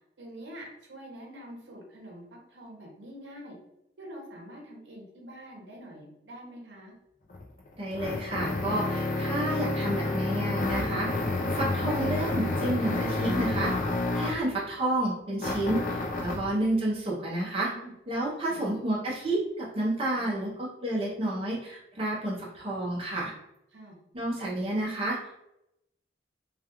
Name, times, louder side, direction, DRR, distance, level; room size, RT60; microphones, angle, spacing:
voice 1, 0.2-3.6 4.0-6.9 17.6-17.9 18.5-18.6 20.1-20.6 23.7-24.0, equal, 80° right, -1 dB, 0.7 m, -46 dB
sound 1, 7.3-14.5 15.4-16.5, left 2 dB, 45° left, 0.3 m, -29 dB
voice 2, 7.8-11.1 11.5-13.7 14.1-17.7 18.1-23.3 24.1-25.2, right 1 dB, 30° right, -5 dB, 0.5 m, -30 dB
2.3 x 2.3 x 2.8 m, 0.84 s
head